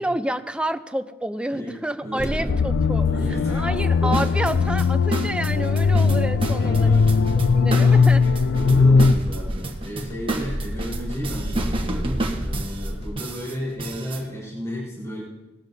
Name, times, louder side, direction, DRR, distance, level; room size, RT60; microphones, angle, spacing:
voice 1, 0.0-3.1 3.5-7.0 7.5-8.2, right 1 dB, 5° right, 9 dB, 0.5 m, -29 dB
voice 2, 2.0-2.6 3.1-3.6 4.0-4.1 4.4-4.5 6.6-7.3 7.7-8.1 8.5-15.2, equal, 15° left, -6 dB, 4.1 m, -33 dB
sound 1, 2.2-5.1 5.4-13.1, equal, 60° left, 1.8 m, -31 dB
sound 2, 2.5-9.1, left 4 dB, 80° left, 0.4 m, -19 dB
sound 3, 4.1-14.2, right 2 dB, 30° right, 1.1 m, -31 dB
19.0 x 12.5 x 2.7 m, 1.0 s
head